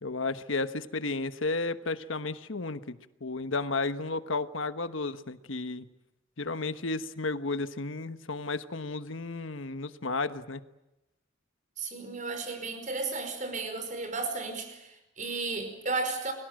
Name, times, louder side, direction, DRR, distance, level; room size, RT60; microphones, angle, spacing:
voice 1, 0.0-3.0 3.2-5.8 6.4-10.6, left 3 dB, 75° left, 12 dB, 1.2 m, -33 dB
voice 2, 11.8-16.3, right 3 dB, 40° right, 8 dB, 5.2 m, -34 dB
29.5 x 22.5 x 7.7 m, 0.98 s
head